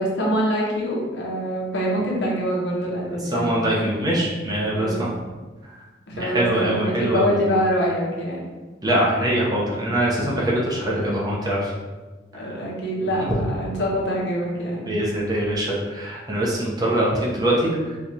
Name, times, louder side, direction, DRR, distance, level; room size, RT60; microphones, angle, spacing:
voice 1, 0.0-3.6 4.7-5.1 6.1-8.5 12.3-14.9, equal, 70° left, -3 dB, 0.8 m, -25 dB
voice 2, 3.3-4.9 6.2-7.3 8.8-11.7 14.9-17.7, right 1 dB, 20° right, -5 dB, 0.7 m, -23 dB
4.5 x 2.4 x 2.7 m, 1.3 s
head